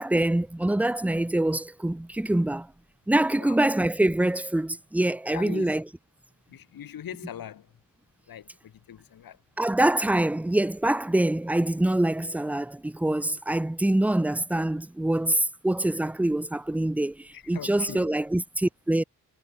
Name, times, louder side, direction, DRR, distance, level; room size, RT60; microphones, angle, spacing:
voice 1, 0.0-2.7 3.1-5.8 9.6-19.0, right 1 dB, 5° right, 0.4 m, -25 dB
voice 2, 5.3-5.7 6.5-7.7 8.3-9.4 17.3-18.1, left 10 dB, 75° left, 1.2 m, -40 dB
wide cardioid pair, 155°, 36 cm